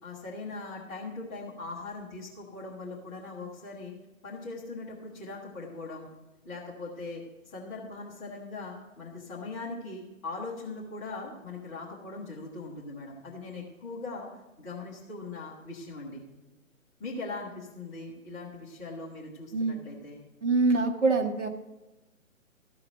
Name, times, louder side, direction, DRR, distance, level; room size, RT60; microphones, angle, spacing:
voice 1, 0.0-3.9 4.2-6.1 6.4-14.3 14.6-16.2 17.0-20.2, left 3 dB, 10° left, -6 dB, 0.9 m, -40 dB
voice 2, 20.4-21.5, right 3 dB, 55° right, 3 dB, 1.6 m, -25 dB
13.5 x 4.9 x 7.7 m, 1.1 s
figure-of-eight pair, 135°, 41 cm